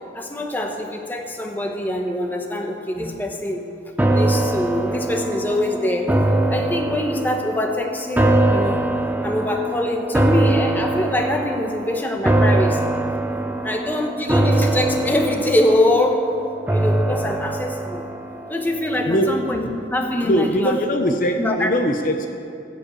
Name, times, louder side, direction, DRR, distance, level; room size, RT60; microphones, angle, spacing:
voice 1, 0.1-3.7 4.1-6.1 6.5-8.8 9.2-12.9 13.6-16.2 16.7-18.0 18.5-20.7 21.4-21.7, left 1 dB, 10° left, 2 dB, 0.9 m, -23 dB
sound 1, 4.0-19.3 19.7-19.8, right 1 dB, 10° right, 0.5 m, -22 dB
voice 2, 20.2-22.3, equal, 50° left, 5 dB, 0.7 m, -21 dB
16.0 x 5.3 x 8.4 m, 2.6 s
head